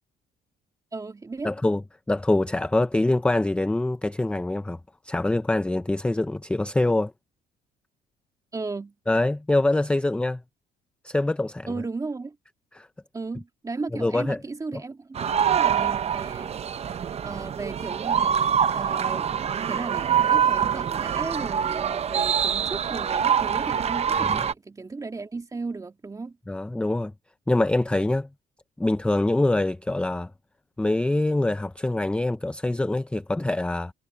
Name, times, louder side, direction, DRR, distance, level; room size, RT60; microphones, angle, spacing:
voice 1, 0.9-1.5 8.5-8.9 11.7-12.4 13.1-16.5 17.2-19.3 19.6-26.4, right 3 dB, 20° right, 2.6 m, -35 dB
voice 2, 1.4-1.8 2.1-4.8 5.0-7.1 9.1-10.4 11.0-11.7 12.7-12.9 13.9-14.4 14.7-14.8 24.2-24.4 26.5-27.1 27.5-28.3 28.8-30.3 30.8-33.9, left 2 dB, 5° left, 0.6 m, -24 dB
sound 1, 15.1-24.5, right 8 dB, 40° right, 0.8 m, -25 dB
cardioid pair, 110°, 17 cm